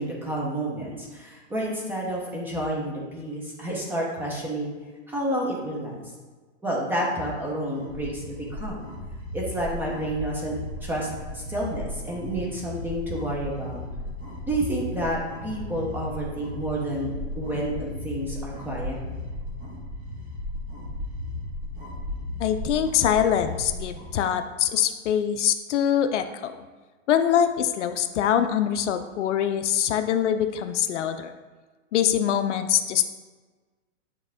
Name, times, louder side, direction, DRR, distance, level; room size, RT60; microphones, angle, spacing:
voice 1, 0.0-4.7 5.1-6.0 6.6-8.8 9.3-10.6 10.8-13.8 14.5-19.0, right 1 dB, 5° right, -3 dB, 0.7 m, -30 dB
sound 1, 7.7-24.1, left 1 dB, 20° right, 1.5 m, -36 dB
voice 2, 22.4-26.7 27.1-31.3 31.9-33.0, left 9 dB, 65° left, 9 dB, 0.5 m, -24 dB
9.1 x 3.5 x 3.5 m, 1.3 s
hypercardioid pair, 155°, 39 cm